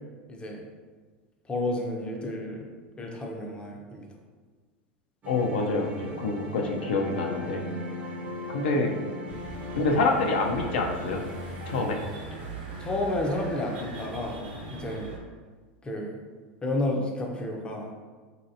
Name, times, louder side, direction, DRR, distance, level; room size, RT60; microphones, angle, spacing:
voice 1, 0.3-0.7 1.5-2.7 3.0-4.1 6.7-6.8 12.8-15.1 15.8-16.2 16.6-17.9, left 1 dB, 15° left, 0 dB, 0.5 m, -31 dB
sound 1, 5.2-11.9, equal, 30° right, 0.7 m, -38 dB
voice 2, 5.3-7.6 8.5-8.9 9.8-11.2 11.7-12.0, left 3 dB, 75° left, 1 dB, 0.5 m, -26 dB
sound 2, 9.3-15.2, right 2 dB, 70° right, 0.8 m, -40 dB
3.0 x 2.8 x 2.6 m, 1.4 s
hypercardioid pair, 105°, 6 cm